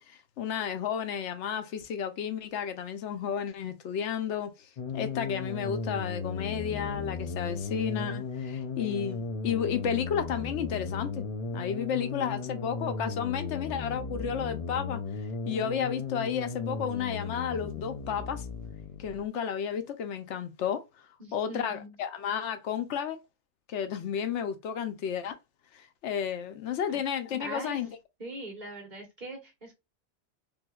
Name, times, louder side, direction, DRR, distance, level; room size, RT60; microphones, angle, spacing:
voice 1, 0.0-4.5 4.9-11.2 11.5-15.0 15.5-18.5 19.0-20.8 21.3-23.2 23.7-25.4 25.7-27.9, left 8 dB, 90° left, 0.9 m, -32 dB
sound 1, 4.8-19.3, left 4 dB, 60° left, 0.4 m, -36 dB
voice 2, 21.2-21.9 26.9-27.0 27.4-27.8 28.2-29.7, right 1 dB, 40° right, 1.4 m, -41 dB
3.4 x 3.0 x 2.2 m
omnidirectional pair, 1.2 m